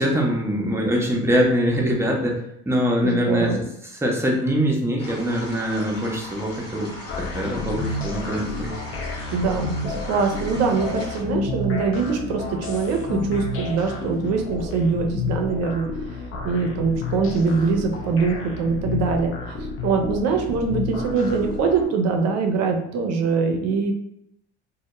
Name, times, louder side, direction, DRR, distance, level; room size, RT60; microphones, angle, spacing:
voice 1, 0.0-2.4 2.7-3.6 3.9-8.7, equal, 10° right, -1 dB, 0.6 m, -23 dB
voice 2, 3.0-3.6 9.3-15.9 16.4-23.9, right 4 dB, 50° right, 4 dB, 0.6 m, -23 dB
sound 1, 5.0-11.2, left 1 dB, 75° left, 1.0 m, -39 dB
sound 2, 7.1-21.9, left 3 dB, 40° left, 0.5 m, -30 dB
2.2 x 2.1 x 2.9 m, 0.75 s
hypercardioid pair, 70°, 32 cm